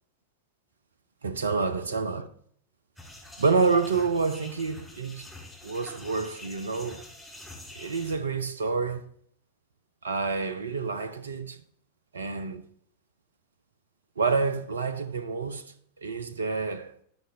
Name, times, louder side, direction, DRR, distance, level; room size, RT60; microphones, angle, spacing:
voice 1, 1.2-2.3 3.4-5.3 5.6-7.0 7.7-9.0 10.0-11.6 12.1-12.6 14.2-15.7 16.0-16.9, right 4 dB, 70° right, 0.5 m, -28 dB
sound 1, 3.0-8.2, left 2 dB, ahead, 2.0 m, -45 dB
13.0 x 5.1 x 2.6 m
figure-of-eight pair, 90°, 0 cm